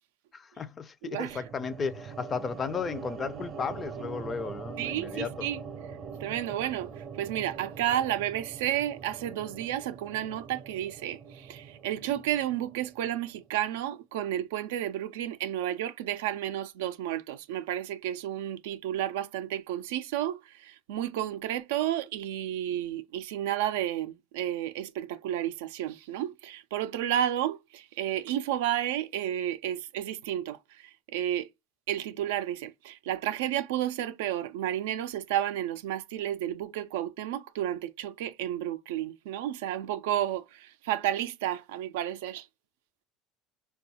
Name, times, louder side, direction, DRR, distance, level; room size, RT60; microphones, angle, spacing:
voice 1, 0.3-5.5, left 5 dB, 30° left, 0.4 m, -34 dB
voice 2, 1.0-1.4 4.8-5.6 6.2-31.5 31.9-42.5, right 12 dB, 90° right, 0.3 m, -32 dB
sound 1, 1.3-13.5, right 6 dB, 45° right, 0.6 m, -43 dB
3.7 x 2.3 x 2.7 m
supercardioid pair, 110°, 0 cm